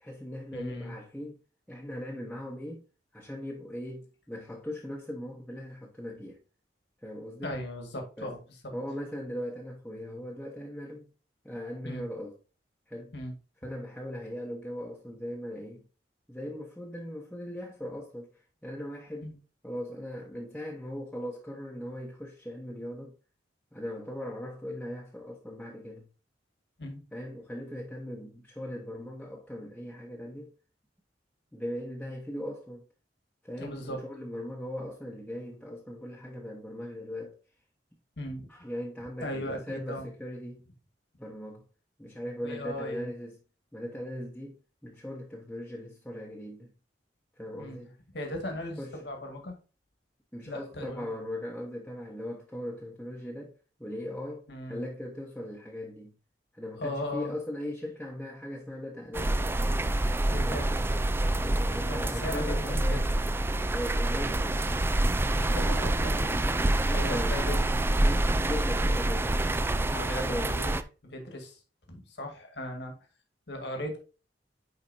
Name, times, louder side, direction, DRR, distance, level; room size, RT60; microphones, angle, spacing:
voice 1, 0.0-1.4 1.7-2.8 3.1-6.4 7.0-7.6 8.2-8.3 8.7-11.1 11.4-12.4 12.9-13.1 13.6-15.8 16.3-18.3 18.6-19.3 19.6-23.2 23.7-26.1 27.1-30.5 31.5-32.8 33.4-37.4 38.5-40.6 41.2-41.6 42.0-43.4 43.7-46.7 47.4-47.9 48.8-49.0 50.3-56.1 56.5-59.4 60.4-60.7 61.4-63.1 63.7-64.9 66.8-67.4 68.0-69.8 70.1-70.6, equal, 5° left, 0.9 m, -39 dB
voice 2, 0.5-0.9 7.4-8.4 8.6-8.7 11.8-12.0 13.1-13.3 19.2-19.4 26.8-27.0 33.6-34.0 38.2-38.5 39.2-40.0 42.4-43.1 47.6-47.8 48.1-49.6 50.5-51.1 54.5-54.9 56.8-57.3 60.3-60.7 61.9-63.0 65.4-67.7 69.9-71.6 71.9-72.9 73.5-74.0, left 1 dB, 70° left, 1.9 m, -37 dB
sound 1, 59.1-70.8, right 1 dB, 15° right, 0.3 m, -27 dB
9.7 x 4.2 x 2.7 m
head